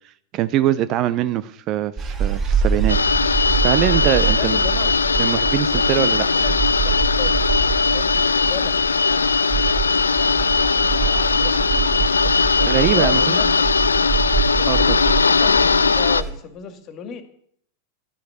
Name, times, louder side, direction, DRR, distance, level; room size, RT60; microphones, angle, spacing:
voice 1, 0.3-3.0 3.4-4.6 5.2-6.3 12.7-13.2 14.7-15.0, right 12 dB, 35° right, 15 dB, 0.8 m, -22 dB
sound 1, 2.0-16.3, right 6 dB, 20° right, 6.3 m, -25 dB
sound 2, 2.9-16.2, left 4 dB, 75° left, 0.5 m, -19 dB
voice 2, 4.3-4.9 5.4-7.5 7.9-8.8 9.1-9.9 10.4-13.7 14.5-17.2, left 7 dB, 35° left, 8 dB, 2.2 m, -36 dB
12.5 x 9.9 x 8.3 m, 0.65 s
figure-of-eight pair, 90°, 0 cm